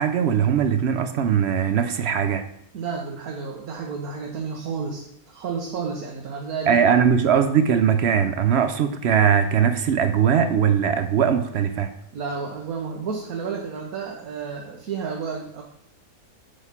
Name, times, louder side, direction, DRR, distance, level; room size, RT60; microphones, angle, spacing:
voice 1, 0.0-2.4 6.7-11.9, right 8 dB, 65° right, 9 dB, 0.6 m, -20 dB
voice 2, 2.7-6.8 12.1-15.6, right 5 dB, 90° right, 0 dB, 1.4 m, -31 dB
8.3 x 3.2 x 5.7 m, 0.73 s
omnidirectional pair, 1.5 m